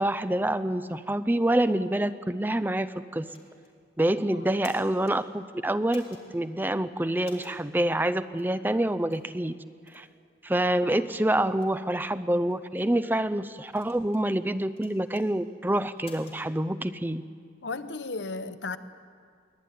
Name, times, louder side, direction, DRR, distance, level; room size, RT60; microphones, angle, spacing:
voice 1, 0.0-3.3 4.0-6.0 6.3-9.6 9.9-10.1 10.4-17.2, right 1 dB, 10° right, 12 dB, 0.5 m, -27 dB
sound 1, 3.3-3.7 4.4-5.2 5.9-6.2 7.2-7.6 8.4-8.5 9.1-9.3 9.9-10.1 10.7-10.8 11.4-11.7 12.5-12.9 13.7-14.3 14.8-15.3 16.0-16.4, left 3 dB, 35° left, 3.9 m, -51 dB
voice 2, 17.6-18.8, left 3 dB, 80° left, 11 dB, 1.1 m, -34 dB
23.0 x 18.5 x 9.3 m, 2.1 s
head